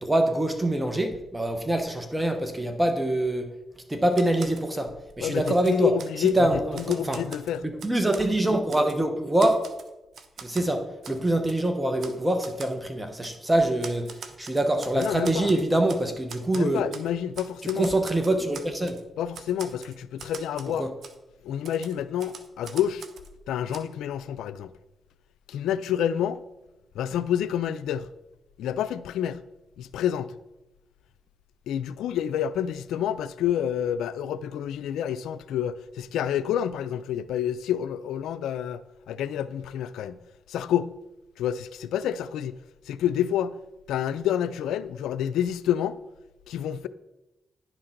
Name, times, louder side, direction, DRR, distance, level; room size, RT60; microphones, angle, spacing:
voice 1, 0.0-3.5 3.9-7.2 7.6-9.6 10.4-14.1 14.4-16.8 17.8-19.0 20.7-20.9, right 1 dB, 15° right, 1.0 m, -25 dB
Typewriter, 4.1-4.7 5.1-6.4 6.7-8.3 8.7-9.0 9.4-10.7 11.0-11.2 11.5-11.6 12.0-12.2 12.4-12.7 13.2-13.4 13.8-16.0 16.3-17.1 17.3-19.0 19.3-20.7 21.0-21.2 21.6-23.3 23.7-23.8, right 6 dB, 65° right, 0.9 m, -43 dB
voice 2, 5.2-6.5 6.7-7.6 14.9-15.5 16.5-17.9 19.2-20.9 21.4-23.0 23.5-24.7 25.5-26.4 26.9-28.1 28.6-29.4 29.8-30.3 31.7-38.8 39.1-40.2 40.5-40.9 41.4-42.6 42.9-43.6 43.9-46.0 46.5-46.9, left 10 dB, 90° left, 0.3 m, -28 dB
10.5 x 3.8 x 5.8 m
cardioid pair, 60°, 0 cm